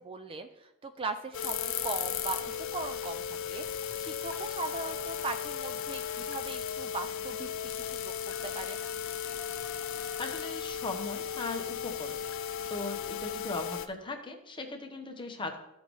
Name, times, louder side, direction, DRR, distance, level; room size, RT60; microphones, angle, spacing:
voice 1, 0.0-8.8, right 3 dB, 25° right, 7 dB, 0.4 m, -39 dB
sound 1, 1.3-13.9, left 8 dB, 60° left, 0.4 m, -37 dB
sound 2, 1.4-2.5 2.8-2.9 3.4-3.5 3.6-6.9 7.7-10.8, left 11 dB, 90° left, 0.8 m, -40 dB
voice 2, 10.2-12.2 12.5-15.6, left 2 dB, 20° left, 4 dB, 0.9 m, -38 dB
13.5 x 5.3 x 3.1 m, 0.94 s
head